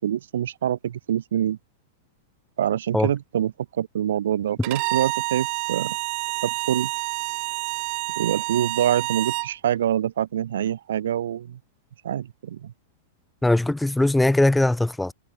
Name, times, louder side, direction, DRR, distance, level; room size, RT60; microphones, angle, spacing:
voice 1, 0.0-1.6 2.6-6.0 6.4-6.9 8.2-11.6 12.0-12.7, right 10 dB, 65° right, 5.2 m, -25 dB
Bowed string instrument, 4.6-9.5, right 40 dB or more, 45° right, 1.4 m, -28 dB
voice 2, 13.4-15.1, left 1 dB, 5° left, 4.4 m, -20 dB
figure-of-eight pair, 95°, 0 cm